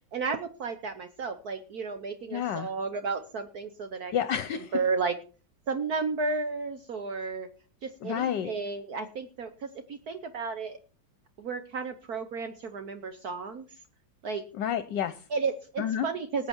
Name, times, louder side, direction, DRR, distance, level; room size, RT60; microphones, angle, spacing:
voice 1, 0.1-4.1 4.7-5.2 5.7-7.5 7.8-10.8 11.4-13.6 14.2-14.4 15.3-16.5, right 4 dB, 60° right, 8 dB, 1.4 m, -33 dB
voice 2, 2.3-2.7 4.1-4.7 8.0-8.5 14.6-15.1 15.8-16.1, left 9 dB, 70° left, 12 dB, 1.4 m, -29 dB
19.5 x 8.2 x 4.4 m, 0.38 s
omnidirectional pair, 2.0 m